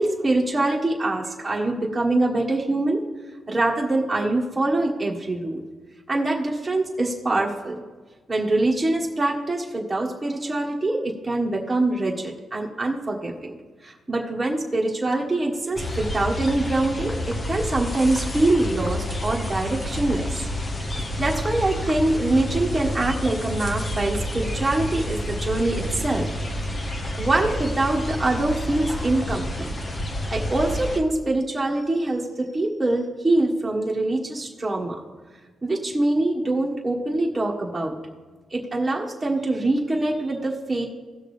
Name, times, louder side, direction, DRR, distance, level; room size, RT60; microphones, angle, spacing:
voice 1, 0.0-3.0 3.5-5.6 6.1-7.8 8.3-13.6 13.8-20.5 20.8-26.3 27.2-29.7 30.3-35.0 35.6-37.9 38.5-40.8, right 2 dB, 10° right, -3 dB, 1.5 m, -24 dB
sound 1, 15.8-31.0, left 1 dB, 30° left, 0.9 m, -29 dB
16.5 x 6.3 x 3.4 m, 1.4 s
cardioid pair, 125°, 0 cm